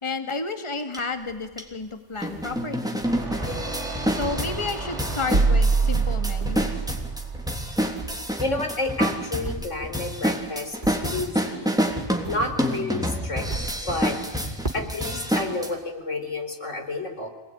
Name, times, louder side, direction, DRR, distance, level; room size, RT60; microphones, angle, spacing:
voice 1, 0.0-3.0 4.1-6.8, left 3 dB, 20° left, 7 dB, 2.1 m, -31 dB
sound 1, 0.9-1.0 1.6-1.7 2.2-15.7, equal, 5° right, 3.4 m, -28 dB
sound 2, 0.9-3.1 3.5-5.6 5.9-11.6 11.8-15.2, right 2 dB, 35° right, 3.7 m, -40 dB
sound 3, 3.0-8.3, right 4 dB, 60° right, 3.5 m, -26 dB
voice 2, 8.4-11.7 12.3-13.5 13.9-14.2 14.7-17.3, left 2 dB, 65° left, 6 dB, 4.5 m, -30 dB
27.5 x 20.0 x 10.0 m, 1.2 s
omnidirectional pair, 1.3 m